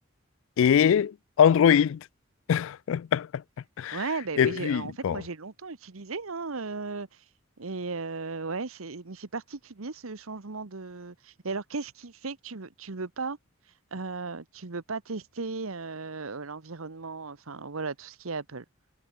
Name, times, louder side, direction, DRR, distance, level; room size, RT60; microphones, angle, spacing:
voice 1, 0.6-2.1 2.5-3.4 3.8-4.0 4.4-5.2, left 8 dB, 70° left, 0.3 m, -22 dB
voice 2, 3.9-7.2 7.6-13.4 13.9-18.6, right 4 dB, 80° right, 1.1 m, -36 dB
head